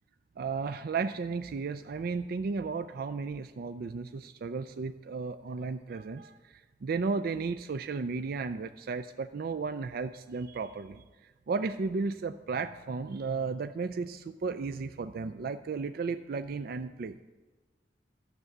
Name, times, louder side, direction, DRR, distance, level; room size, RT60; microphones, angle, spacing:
voice 1, 0.4-6.4 6.8-11.0 11.5-17.2, right 4 dB, 55° right, 10 dB, 0.4 m, -34 dB
12.5 x 6.8 x 7.8 m, 1.3 s
head